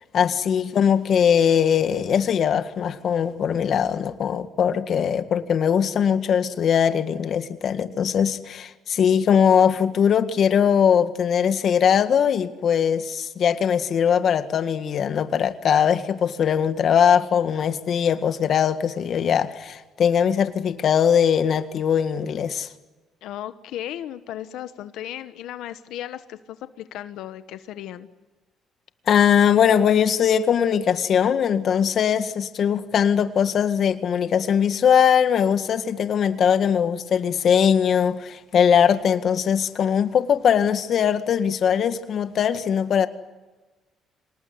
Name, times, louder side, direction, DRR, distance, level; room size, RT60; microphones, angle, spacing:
voice 1, 0.1-22.7 29.1-43.1, left 8 dB, 55° left, 1.8 m, -20 dB
voice 2, 23.2-28.1, left 12 dB, 85° left, 1.2 m, -35 dB
26.5 x 19.5 x 9.7 m
cardioid pair, 105°, 0 cm